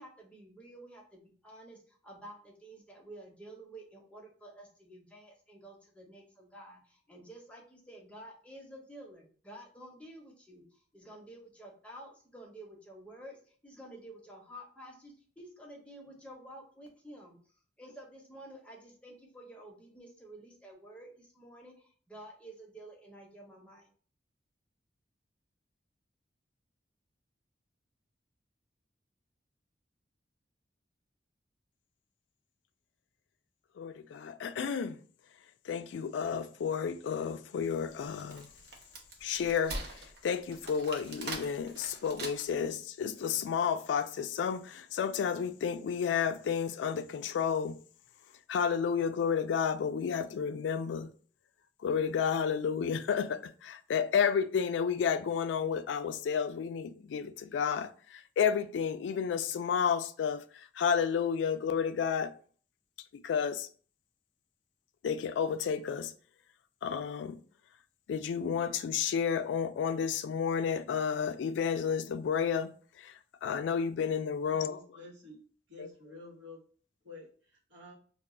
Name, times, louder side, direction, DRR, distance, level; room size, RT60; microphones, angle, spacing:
voice 1, 0.0-17.4 17.8-23.9, right 1 dB, 5° left, 0.7 m, -51 dB
voice 2, 33.8-35.0 35.7-38.5 39.2-39.9 40.2-47.8 48.5-51.1 51.8-60.4 60.8-62.3 63.1-63.7 65.0-66.1 66.8-67.4 68.1-72.7 73.0-73.1 73.4-74.8 75.8-75.9, left 7 dB, 85° left, 0.3 m, -31 dB
Wood, 38.0-42.7, right 2 dB, 65° right, 0.6 m, -42 dB
voice 3, 74.4-75.4 75.7-76.6 77.0-77.9, left 2 dB, 85° right, 1.1 m, -50 dB
2.3 x 2.3 x 3.7 m
head